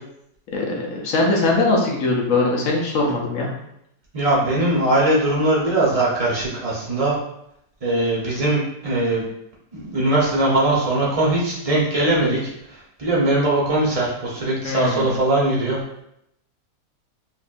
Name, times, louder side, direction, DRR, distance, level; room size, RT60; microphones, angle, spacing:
voice 1, 0.5-3.5 14.6-15.1, left 2 dB, 60° left, -2 dB, 1.1 m, -21 dB
voice 2, 4.1-7.2 7.8-9.3 9.7-15.8, right 2 dB, 25° right, -6 dB, 0.9 m, -20 dB
5.0 x 2.6 x 2.6 m, 0.78 s
omnidirectional pair, 1.8 m